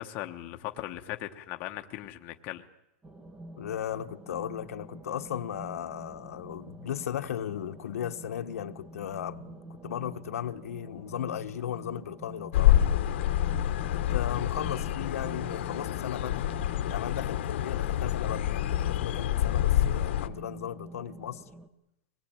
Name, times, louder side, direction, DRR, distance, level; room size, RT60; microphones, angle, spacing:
voice 1, 0.0-2.6, left 14 dB, 25° left, 1.0 m, -38 dB
sound 1, 3.0-21.7, right 1 dB, 10° right, 0.9 m, -47 dB
voice 2, 3.6-12.9 13.9-16.5 16.9-21.4, left 10 dB, 85° left, 1.3 m, -36 dB
sound 2, 12.5-20.3, left 12 dB, 50° left, 1.1 m, -27 dB
25.0 x 19.5 x 9.0 m
supercardioid pair, 180°, 8 cm